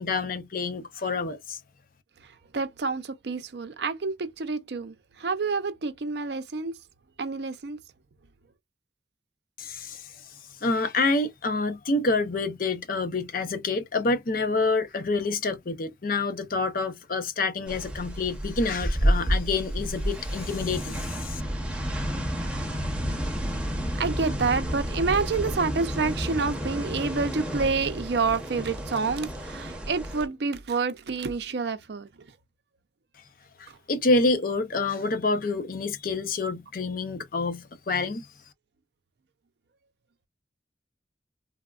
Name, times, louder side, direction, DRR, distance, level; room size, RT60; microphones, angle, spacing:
voice 1, 0.0-1.6 9.6-10.1 10.6-21.4 33.6-38.3, left 3 dB, 50° left, 0.6 m, -27 dB
voice 2, 2.5-6.7 7.2-7.8 24.0-32.1, right 4 dB, 65° right, 0.5 m, -28 dB
sound 1, 17.7-30.3, equal, 5° right, 0.8 m, -30 dB
3.4 x 2.2 x 2.3 m
head